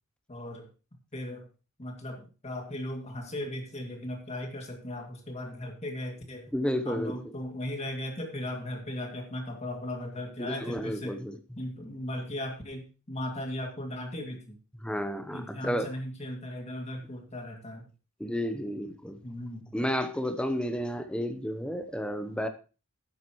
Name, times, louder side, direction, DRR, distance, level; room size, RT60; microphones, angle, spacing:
voice 1, 0.3-0.7 1.1-1.4 1.8-6.5 6.8-11.2 11.6-14.6 15.3-17.9 19.2-19.7, left 1 dB, 30° left, 2 dB, 2.3 m, -37 dB
voice 2, 6.5-7.1 10.4-11.4 14.8-15.9 18.2-19.2 19.7-22.5, equal, 5° left, 8 dB, 0.7 m, -31 dB
12.0 x 9.6 x 3.1 m, 0.33 s
head